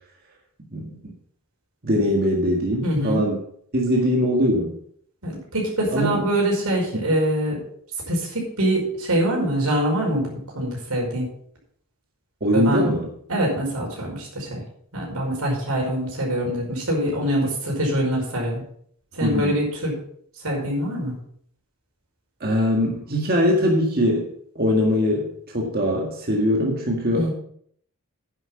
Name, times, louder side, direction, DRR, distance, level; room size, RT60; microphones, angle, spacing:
voice 1, 1.8-3.4 3.7-4.7 5.9-6.2 12.4-13.1 19.2-19.6 22.4-24.3 24.6-27.3, equal, 45° right, 0 dB, 1.8 m, -21 dB
voice 2, 2.8-3.2 5.2-7.6 8.1-11.3 12.5-12.9 13.3-14.6 14.9-18.6 19.1-20.0 20.4-21.1 27.1-27.3, right 1 dB, 90° right, -1 dB, 5.3 m, -24 dB
10.0 x 7.9 x 5.8 m, 0.64 s
head